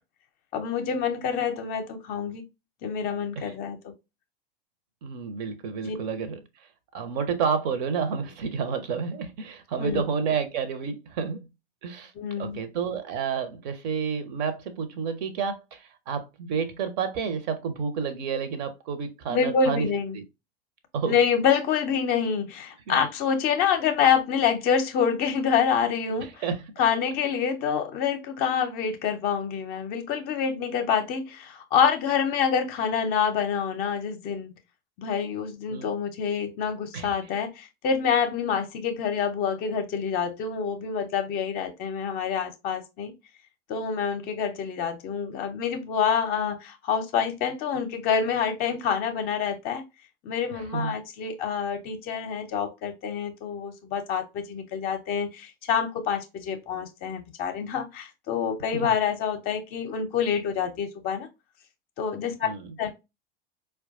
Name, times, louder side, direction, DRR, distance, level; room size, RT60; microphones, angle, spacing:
voice 1, 0.5-2.4 2.8-3.9 5.8-6.0 9.8-10.0 12.2-12.6 19.3-20.2 21.1-26.3 26.8-34.5 35.0-43.1 43.7-49.8 50.2-61.3 62.0-62.5 62.8-62.9, left 7 dB, 35° left, 0.6 m, -27 dB
voice 2, 5.0-6.4 6.9-11.4 11.8-12.1 12.4-19.9 20.1-20.2 20.9-21.2 22.9-23.0 26.2-26.6 35.7-35.9 36.9-37.1 50.5-50.9 58.7-58.9 62.4-62.7, right 6 dB, 45° right, 0.7 m, -30 dB
4.4 x 2.2 x 2.5 m
figure-of-eight pair, 85°, 29 cm